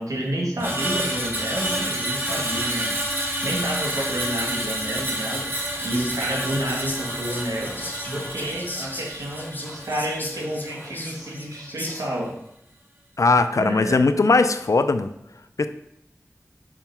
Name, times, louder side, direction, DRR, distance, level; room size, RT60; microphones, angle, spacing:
voice 1, 0.0-3.0 3.4-5.5 5.8-7.8 8.1-12.3 13.5-14.0, right 1 dB, 90° right, -2 dB, 1.9 m, -29 dB
Screech, 0.6-10.9 11.3-11.5, right 1 dB, 40° right, 1.8 m, -29 dB
Whispering, 4.9-12.3, left 1 dB, 35° left, 1.4 m, -38 dB
voice 2, 13.2-15.1 15.6-15.7, left 3 dB, 70° left, 10 dB, 0.5 m, -19 dB
6.9 x 3.8 x 5.8 m, 0.81 s
wide cardioid pair, 60°, 6 cm